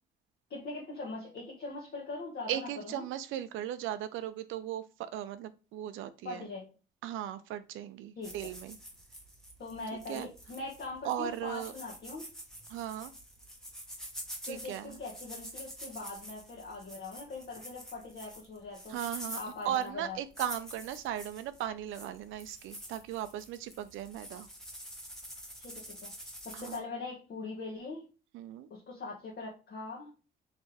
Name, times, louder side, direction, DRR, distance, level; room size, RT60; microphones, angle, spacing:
voice 1, 0.5-3.0 6.2-6.7 8.2-8.3 9.6-12.2 14.5-19.0 19.3-20.2 25.6-26.1 26.4-28.1 28.7-30.1, left 3 dB, 55° left, -4 dB, 1.2 m, -41 dB
voice 2, 2.5-6.5 7.0-8.8 10.1-10.3 11.0-11.7 12.7-13.1 14.4-15.0 18.9-24.5 26.5-26.8 28.3-28.7, right 11 dB, 85° right, 11 dB, 0.4 m, -37 dB
sound 1, 8.2-26.8, equal, ahead, 0.9 m, -47 dB
3.3 x 2.7 x 4.6 m, 0.33 s
cardioid pair, 90°, 20 cm